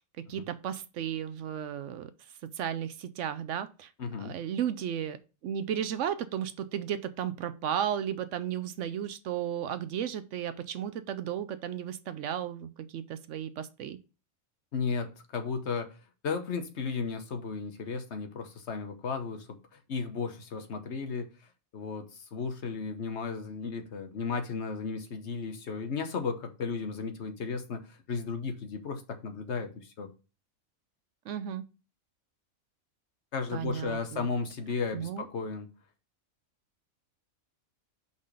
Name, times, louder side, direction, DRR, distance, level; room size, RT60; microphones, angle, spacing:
voice 1, 0.2-2.1 2.6-3.9 4.2-5.2 5.4-14.0 31.3-31.6 33.5-34.3 34.9-35.2, right 9 dB, 70° right, 0.9 m, -34 dB
voice 2, 4.0-4.3 14.7-15.9 16.2-19.5 19.9-21.3 21.7-30.1 33.3-35.7, left 5 dB, 55° left, 1.2 m, -34 dB
5.6 x 4.0 x 4.9 m
omnidirectional pair, 1.4 m